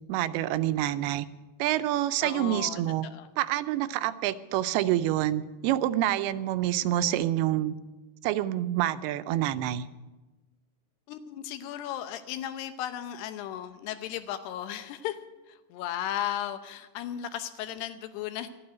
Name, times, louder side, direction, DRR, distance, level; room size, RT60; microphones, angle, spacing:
voice 1, 0.1-1.3 1.6-3.1 3.4-7.7 8.2-9.9, right 13 dB, 85° right, 14 dB, 2.5 m, -27 dB
voice 2, 2.2-2.8 3.1-3.3 11.1-15.2 15.5-18.5, left 11 dB, 90° left, 9 dB, 2.9 m, -35 dB
12.5 x 8.7 x 9.3 m, 1.2 s
omnidirectional pair, 4.6 m